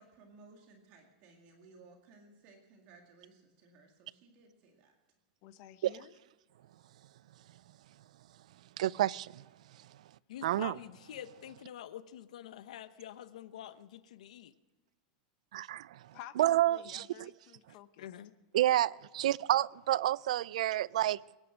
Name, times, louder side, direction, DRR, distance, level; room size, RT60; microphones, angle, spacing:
voice 1, 0.0-5.0, right 3 dB, 35° right, 2.1 m, -59 dB
voice 2, 5.4-6.1 16.1-18.1, left 12 dB, 40° left, 0.8 m, -52 dB
voice 3, 8.8-9.4 10.4-10.7 15.5-17.3 18.5-21.4, right 13 dB, 80° right, 0.4 m, -30 dB
voice 4, 10.3-14.5 17.7-18.3, left 11 dB, 90° left, 0.9 m, -47 dB
23.5 x 9.9 x 6.2 m
supercardioid pair, 175°, 4 cm